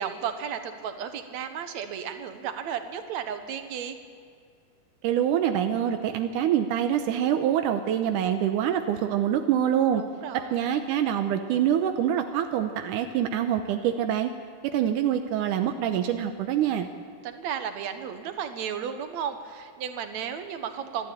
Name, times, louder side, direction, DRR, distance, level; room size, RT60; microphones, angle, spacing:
voice 1, 0.0-4.0 10.0-10.6 17.2-21.1, right 8 dB, 65° right, 7 dB, 2.5 m, -34 dB
voice 2, 5.0-10.0 10.3-14.3 14.6-16.9, right 10 dB, 85° right, 6 dB, 2.4 m, -25 dB
24.5 x 12.5 x 8.9 m, 2.2 s
omnidirectional pair, 3.6 m